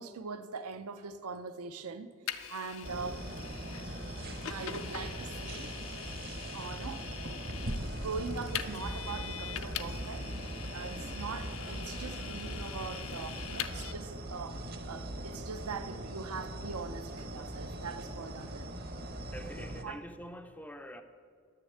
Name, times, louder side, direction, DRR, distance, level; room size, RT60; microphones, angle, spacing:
voice 1, 0.0-2.1 2.4-3.3 4.5-5.8 6.5-7.7 7.9-10.3 10.7-18.7 19.8-20.0, right 5 dB, 75° right, 0.6 m, -42 dB
Vehicle, 2.3-13.9, left 9 dB, 60° left, 0.6 m, -43 dB
sound 1, 2.8-19.8, right 1 dB, 45° right, 0.9 m, -40 dB
voice 2, 19.3-21.0, equal, 5° left, 0.4 m, -45 dB
10.0 x 6.7 x 8.6 m
head